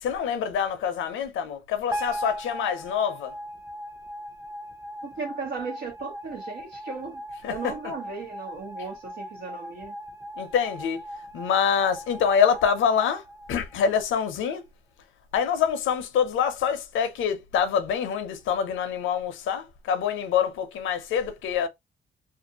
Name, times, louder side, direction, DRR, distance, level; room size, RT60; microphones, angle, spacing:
voice 1, 0.0-3.3 7.4-7.7 10.4-11.0 11.3-13.2 13.5-14.6 15.3-21.7, left 7 dB, 80° left, 0.6 m, -25 dB
sound 1, 1.9-14.2, equal, 15° right, 0.8 m, -39 dB
voice 2, 5.0-7.2 7.5-9.9, right 4 dB, 65° right, 1.1 m, -36 dB
2.6 x 2.4 x 2.8 m
cardioid pair, 90°, 20 cm